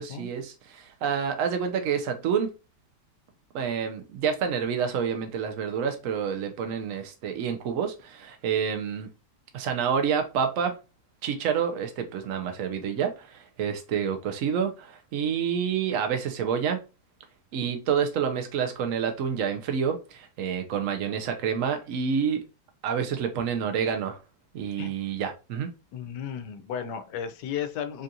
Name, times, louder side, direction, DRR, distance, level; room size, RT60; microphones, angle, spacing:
voice 1, 0.0-2.5 3.5-9.1 9.5-10.8 11.2-16.8 17.5-22.5 22.8-24.2 24.5-25.7, right 7 dB, 60° right, 0.9 m, -28 dB
voice 2, 25.9-28.0, left 8 dB, 90° left, 1.2 m, -34 dB
3.7 x 2.4 x 2.7 m
omnidirectional pair, 1.8 m